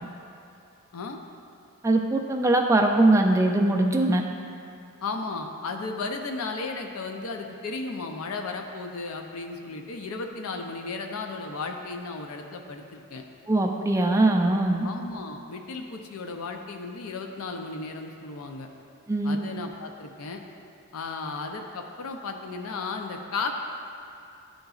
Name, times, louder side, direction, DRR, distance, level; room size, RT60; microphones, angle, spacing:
voice 1, 1.8-4.2 13.5-14.9 19.1-19.4, right 2 dB, 15° right, 2 dB, 0.3 m, -21 dB
voice 2, 5.0-13.2 14.8-18.7 19.2-20.4 20.9-23.6, left 3 dB, 85° left, 4 dB, 0.5 m, -34 dB
10.0 x 3.8 x 2.4 m, 2.6 s
head